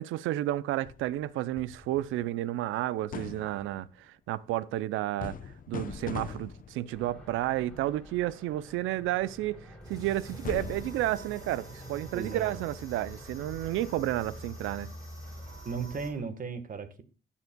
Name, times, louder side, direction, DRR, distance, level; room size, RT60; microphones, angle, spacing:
voice 1, 0.0-5.4 5.7-14.9, right 14 dB, 90° right, 0.4 m, -31 dB
sound 1, 0.9-2.3 3.1-3.9 5.2-7.1 10.4-12.0, left 6 dB, 45° left, 0.8 m, -41 dB
sound 2, 6.9-16.2, right 1 dB, 5° left, 3.2 m, -49 dB
sound 3, 9.8-16.1, equal, 20° right, 2.7 m, -46 dB
voice 2, 12.1-12.6 15.6-17.0, right 5 dB, 45° right, 1.3 m, -36 dB
15.5 x 7.2 x 2.2 m
cardioid pair, 90°, 20 cm